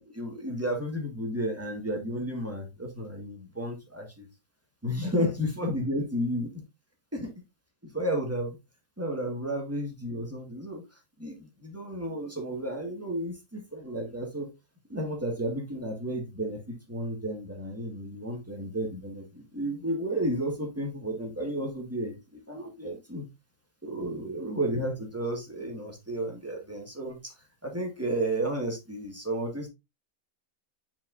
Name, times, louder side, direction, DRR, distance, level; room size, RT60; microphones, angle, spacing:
voice 1, 0.1-4.3 4.8-6.5 7.1-7.3 7.9-8.6 9.0-10.8 11.2-14.5 14.9-23.2 23.8-27.3 27.6-29.7, right 1 dB, 10° right, 1.7 m, -32 dB
7.4 x 5.6 x 2.6 m
omnidirectional pair, 1.5 m